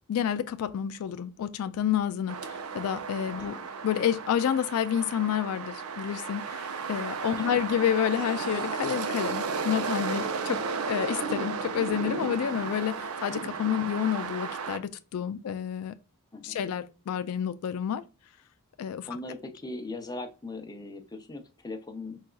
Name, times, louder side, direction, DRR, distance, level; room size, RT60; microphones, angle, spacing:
voice 1, 0.1-3.5 3.8-10.6 10.9-15.9 16.4-18.0 18.8-19.1, left 9 dB, 80° left, 0.3 m, -29 dB
sound 1, 2.3-14.8, right 5 dB, 80° right, 0.6 m, -34 dB
voice 2, 3.4-3.7 7.4-7.6 16.3-16.6 19.0-22.2, left 2 dB, 20° left, 0.5 m, -39 dB
4.0 x 2.3 x 2.2 m
head